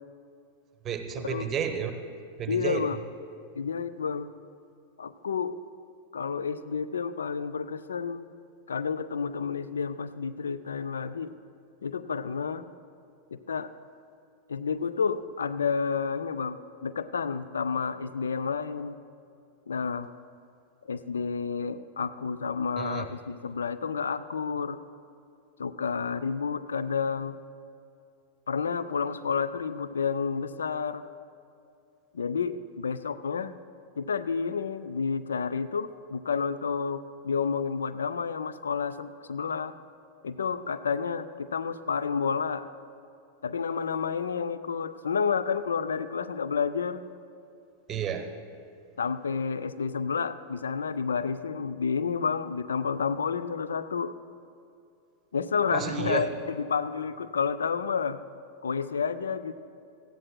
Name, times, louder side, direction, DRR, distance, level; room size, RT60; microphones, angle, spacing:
voice 1, 0.8-1.9 2.4-2.9 22.8-23.1 47.9-48.3 55.7-56.3, right 8 dB, 25° right, 7 dB, 0.9 m, -31 dB
voice 2, 2.5-3.0 3.6-4.3 5.0-5.6 6.1-8.3 8.7-11.3 11.8-12.6 13.3-13.7 14.5-19.0 19.7-20.1 20.8-24.8 25.6-27.4 28.5-31.0 32.1-33.5 34.0-39.7 40.2-42.7 43.4-47.0 49.0-54.1 55.3-58.2 58.6-59.5, left 6 dB, 70° left, 13 dB, 0.3 m, -30 dB
18.0 x 14.0 x 2.2 m, 2.5 s
figure-of-eight pair, 90°, 0 cm